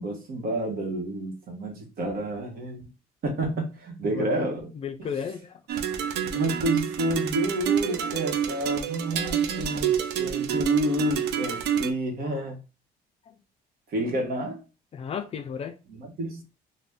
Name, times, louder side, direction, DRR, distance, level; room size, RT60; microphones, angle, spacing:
voice 1, 0.0-2.9 3.2-4.7 5.0-5.1 6.2-12.6 13.9-14.6 15.9-16.4, right 1 dB, 60° right, 1.1 m, -30 dB
voice 2, 4.8-5.9 7.9-8.1 9.1-9.9 12.2-12.3 13.3-13.4 14.9-15.7, left 7 dB, 35° left, 0.4 m, -36 dB
sound 1, 5.7-11.9, right 9 dB, 80° right, 0.4 m, -27 dB
2.5 x 2.2 x 3.4 m
cardioid pair, 110°, 17 cm